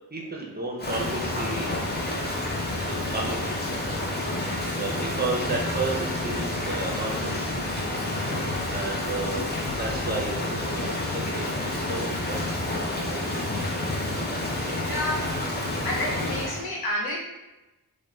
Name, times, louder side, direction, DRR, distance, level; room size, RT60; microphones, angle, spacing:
voice 1, 0.1-1.7 2.1-2.3 3.1-3.5 4.8-7.5 8.7-9.5 9.7-13.5, right 2 dB, 25° right, -1 dB, 0.6 m, -33 dB
Rain, 0.8-16.6, left 1 dB, 25° left, 0.6 m, -29 dB
voice 2, 14.9-15.3 15.8-17.2, left 1 dB, 80° left, -3 dB, 0.8 m, -29 dB
2.4 x 2.1 x 3.1 m, 1.0 s
cardioid pair, 65°, 37 cm